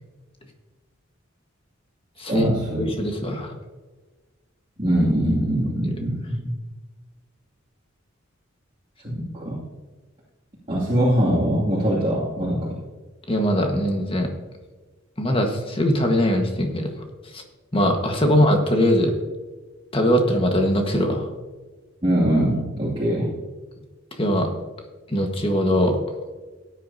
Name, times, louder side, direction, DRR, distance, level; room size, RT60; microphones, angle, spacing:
voice 1, 2.3-2.8 4.8-6.5 9.0-9.6 10.7-12.7 22.0-23.3, right 1 dB, 30° right, -8 dB, 2.5 m, -22 dB
voice 2, 2.8-3.5 13.3-14.3 15.2-16.9 17.3-17.4 17.7-19.1 19.9-21.3 24.2-24.5 25.1-26.0, equal, 25° left, 3 dB, 1.5 m, -21 dB
17.0 x 9.5 x 2.8 m, 1.3 s
head